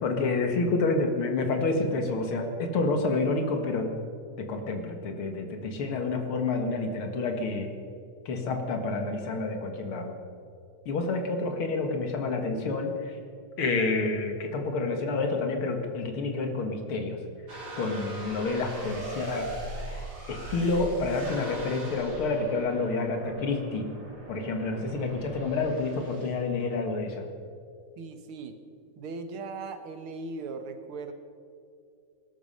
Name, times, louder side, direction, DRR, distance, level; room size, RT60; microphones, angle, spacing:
voice 1, 0.0-3.9 4.4-7.7 8.3-10.1 10.9-13.2 13.6-17.2 17.8-19.5 19.9-20.0 20.3-23.9 24.3-27.2, left 3 dB, 90° left, 5 dB, 2.6 m, -29 dB
sound 1, 17.5-26.3, right 1 dB, 50° right, 4.3 m, -40 dB
voice 2, 28.0-28.6 29.0-31.1, right 4 dB, 90° right, 8 dB, 2.1 m, -38 dB
19.0 x 12.5 x 5.5 m, 2.4 s
omnidirectional pair, 2.3 m